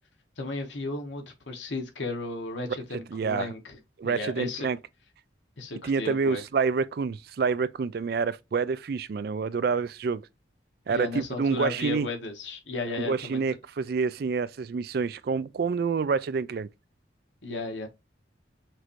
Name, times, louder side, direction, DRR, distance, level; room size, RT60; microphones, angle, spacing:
voice 1, 0.4-4.7 5.6-6.4 10.9-13.4 17.4-17.9, left 3 dB, 80° left, 1.3 m, -34 dB
voice 2, 3.1-3.5 4.0-4.8 5.8-10.2 10.9-12.1 13.0-16.7, right 5 dB, 55° right, 0.3 m, -27 dB
6.1 x 2.7 x 3.0 m
head